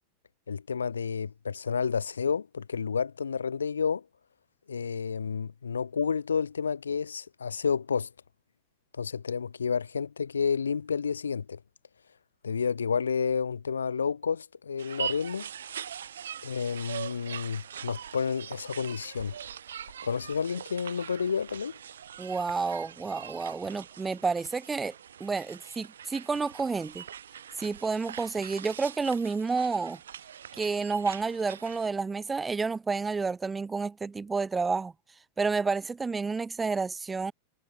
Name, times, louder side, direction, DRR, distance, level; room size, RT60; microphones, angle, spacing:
voice 1, 0.5-4.0 4.7-8.1 8.9-11.6 12.4-15.5 16.4-19.4 20.0-21.8, left 6 dB, 70° left, 0.4 m, -30 dB
sound 1, 14.8-31.9, right 9 dB, 65° right, 3.1 m, -42 dB
voice 2, 22.2-24.9 25.2-27.0 27.6-30.0 30.6-34.9 35.4-37.3, right 4 dB, 15° right, 0.4 m, -30 dB
figure-of-eight pair, 90°, 0 cm